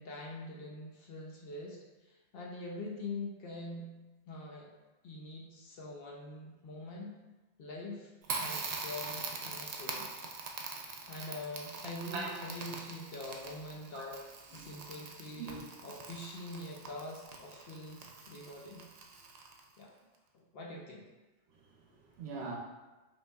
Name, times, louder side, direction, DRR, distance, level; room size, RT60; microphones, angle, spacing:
voice 1, 0.0-4.0 4.3-4.7 5.0-7.1 7.6-8.1 8.4-10.1 11.1-14.2 14.5-18.9 19.8-19.9 20.3-21.1, left 2 dB, 60° left, -2 dB, 0.7 m, -44 dB
Crackle, 8.2-19.8, right 4 dB, 90° right, 0.3 m, -43 dB
voice 2, 21.5-22.6, right 4 dB, 65° right, 1 dB, 0.8 m, -42 dB
5.2 x 3.0 x 2.3 m, 1.1 s
omnidirectional pair, 1.3 m